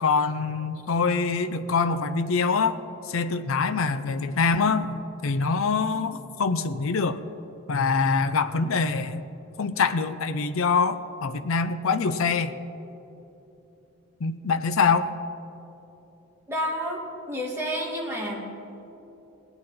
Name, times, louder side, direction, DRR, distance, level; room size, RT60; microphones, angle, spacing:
voice 1, 0.0-2.8 3.0-7.2 7.7-9.3 9.6-12.6 14.2-15.1, left 4 dB, 65° left, 10 dB, 0.5 m, -24 dB
voice 2, 16.5-18.4, equal, 10° right, -3 dB, 2.1 m, -30 dB
19.0 x 8.8 x 4.2 m, 3.0 s
head